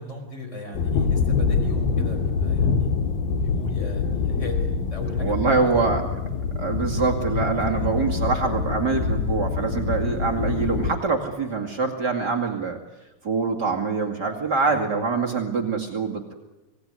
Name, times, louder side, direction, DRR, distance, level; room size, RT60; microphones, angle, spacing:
voice 1, 0.0-2.9 3.4-4.6 4.9-5.7 7.6-8.1 10.0-10.1 14.6-14.8, left 2 dB, 20° left, 4 dB, 5.0 m, -38 dB
sound 1, 0.7-10.9, left 5 dB, 85° left, 3.3 m, -25 dB
voice 2, 5.2-6.0 6.6-12.8 13.2-16.3, right 4 dB, 35° right, 2 dB, 2.5 m, -24 dB
25.5 x 18.5 x 9.6 m, 1.1 s
omnidirectional pair, 4.0 m